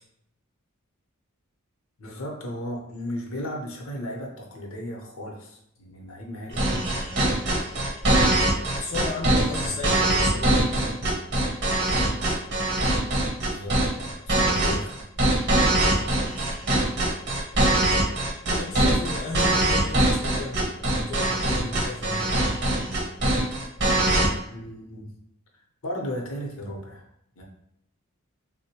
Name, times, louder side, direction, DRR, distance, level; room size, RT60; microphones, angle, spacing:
voice 1, 2.0-6.8 9.6-10.0 13.4-15.1 20.4-20.5 24.5-25.1 25.5-27.1 27.4-27.5, equal, 70° left, 0 dB, 0.7 m, -36 dB
sound 1, 6.5-24.3, right 1 dB, 50° right, 0.8 m, -22 dB
voice 2, 8.8-11.0 18.5-22.4, left 3 dB, 35° left, -2 dB, 0.3 m, -34 dB
3.6 x 2.1 x 2.8 m, 0.75 s
head